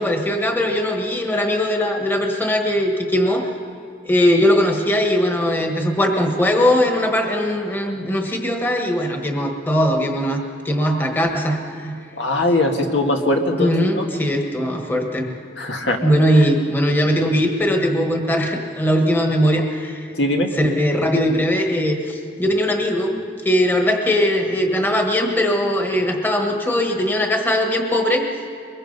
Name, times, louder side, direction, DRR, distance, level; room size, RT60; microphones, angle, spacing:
voice 1, 0.0-3.5 4.0-12.0 13.6-15.3 16.0-20.1 20.5-23.2 23.4-28.2, equal, 10° left, 3 dB, 1.4 m, -20 dB
voice 2, 12.2-13.7 15.6-16.0 20.1-20.5, left 2 dB, 85° left, 2 dB, 2.0 m, -20 dB
24.0 x 21.5 x 5.4 m, 2.4 s
head